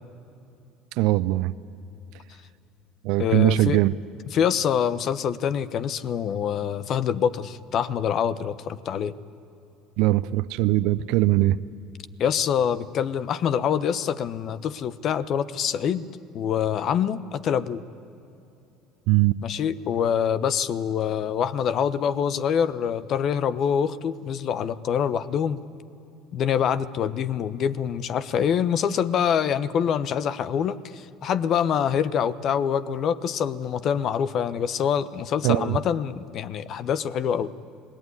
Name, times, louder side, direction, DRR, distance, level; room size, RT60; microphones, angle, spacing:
voice 1, 1.0-1.5 3.0-3.9 10.0-11.6 19.1-19.4 35.4-35.8, right 17 dB, 70° right, 15 dB, 0.6 m, -21 dB
voice 2, 3.2-3.8 4.3-9.1 12.2-16.1 16.3-17.8 19.4-25.6 26.3-37.5, left 8 dB, 55° left, 15 dB, 1.0 m, -25 dB
26.5 x 19.0 x 9.7 m, 2.8 s
hypercardioid pair, 70°, 0 cm